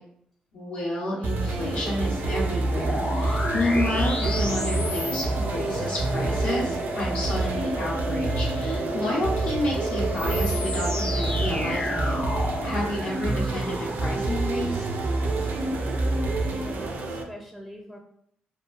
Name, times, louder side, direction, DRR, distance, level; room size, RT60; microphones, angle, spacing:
voice 1, 0.5-12.2 12.6-14.9, left 1 dB, 80° left, -7 dB, 0.8 m, -30 dB
sound 1, 1.2-17.2, right 2 dB, 65° right, 0.4 m, -27 dB
sound 2, 2.8-12.7, left 1 dB, 45° left, 0.8 m, -32 dB
voice 2, 16.5-18.0, equal, 10° left, 0 dB, 0.4 m, -43 dB
2.9 x 2.2 x 2.4 m, 0.69 s
cardioid pair, 75°, 3 cm